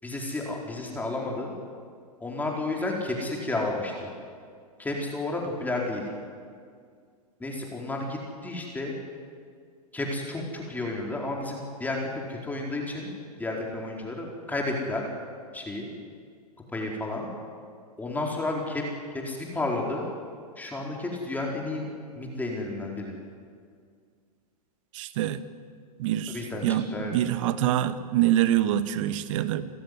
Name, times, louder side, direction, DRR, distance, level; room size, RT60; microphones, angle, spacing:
voice 1, 0.0-1.5 2.2-4.1 4.8-6.0 7.4-8.9 9.9-13.1 13.4-15.0 15.5-15.9 16.7-17.3 18.0-18.8 19.1-20.0 20.6-21.9 22.2-23.1 26.3-26.6 26.9-27.1, left 2 dB, 10° left, -1 dB, 4.3 m, -31 dB
voice 2, 24.9-25.4 26.0-29.7, right 12 dB, 55° right, 13 dB, 1.4 m, -25 dB
28.5 x 15.0 x 9.6 m, 2.1 s
hypercardioid pair, 125°, 20 cm